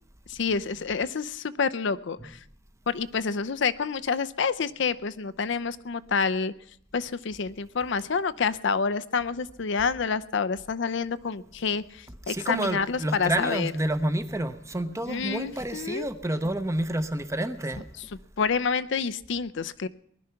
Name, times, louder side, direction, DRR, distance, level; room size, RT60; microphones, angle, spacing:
voice 1, 0.3-2.4 2.9-6.5 6.9-13.7 15.1-16.1 18.4-19.9, left 5 dB, 65° left, 0.5 m, -28 dB
voice 2, 12.3-17.9, right 1 dB, 15° right, 0.8 m, -29 dB
19.5 x 11.0 x 5.8 m
head